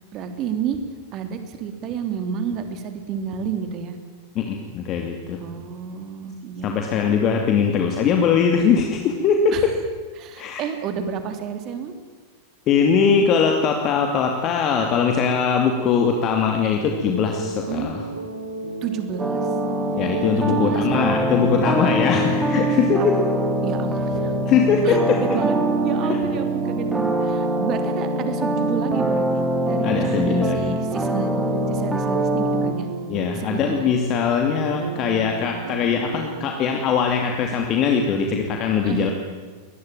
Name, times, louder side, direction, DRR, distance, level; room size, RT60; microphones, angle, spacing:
voice 1, 0.1-0.8 1.1-4.0 5.4-7.0 9.5-9.7 10.2-11.9 17.7-17.9 18.8-19.5 20.4-21.0 23.6-24.3 24.8-25.6 25.8-31.4 31.7-32.9 33.3-33.9 38.8-39.1, right 7 dB, 35° right, 8 dB, 3.3 m, -30 dB
voice 2, 4.3-5.4 6.6-9.5 10.4-10.6 12.7-18.1 19.9-23.2 24.5-25.4 26.1-26.2 29.8-30.7 33.1-39.1, left 6 dB, 35° left, 3 dB, 2.6 m, -21 dB
sound 1, 16.7-36.5, right 3 dB, 65° right, 3.6 m, -33 dB
sound 2, 19.2-32.7, right 1 dB, 10° right, 2.9 m, -23 dB
23.0 x 20.0 x 9.1 m, 1.4 s
figure-of-eight pair, 90°, 0 cm